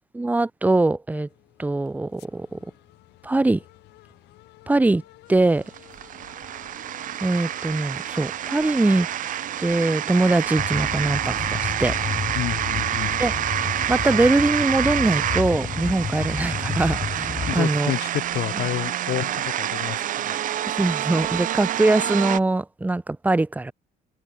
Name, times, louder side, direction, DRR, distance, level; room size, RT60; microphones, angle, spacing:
voice 1, 0.1-1.3 1.6-2.6 3.2-3.6 4.7-5.0 5.3-5.6 7.2-9.1 9.6-12.0 13.2-13.3 13.9-17.9 18.5-18.6 20.8-23.7, right 2 dB, 10° right, 0.8 m, -22 dB
sound 1, 1.2-15.7, left 18 dB, 85° left, 7.2 m, -51 dB
sound 2, 5.4-22.4, right 11 dB, 50° right, 0.7 m, -28 dB
sound 3, 10.6-17.6, left 6 dB, 35° left, 1.8 m, -31 dB
voice 2, 12.3-13.2 17.5-20.4, left 14 dB, 70° left, 2.6 m, -29 dB
cardioid pair, 110°, 17 cm